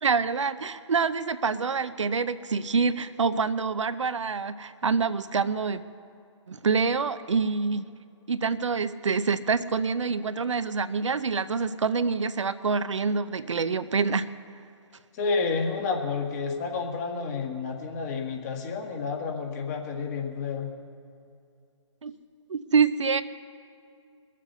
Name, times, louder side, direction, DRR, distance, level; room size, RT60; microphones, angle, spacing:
voice 1, 0.0-5.8 6.5-7.9 8.3-14.3 22.0-22.1 22.5-23.2, right 5 dB, 75° right, 12 dB, 0.6 m, -26 dB
voice 2, 15.1-20.7, left 4 dB, 35° left, 2 dB, 1.6 m, -30 dB
21.5 x 7.5 x 6.7 m, 2.5 s
figure-of-eight pair, 135°, 16 cm